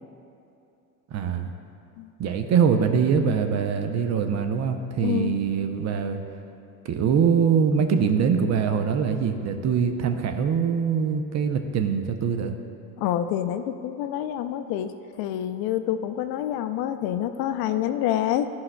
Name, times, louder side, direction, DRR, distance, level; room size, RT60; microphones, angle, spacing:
voice 1, 1.1-1.5 2.2-6.2 6.8-12.5, right 6 dB, 40° right, 6 dB, 0.6 m, -23 dB
voice 2, 5.0-5.4 13.0-18.5, left 11 dB, 60° left, 9 dB, 0.5 m, -27 dB
11.5 x 5.6 x 2.2 m, 2.7 s
supercardioid pair, 85°, 41 cm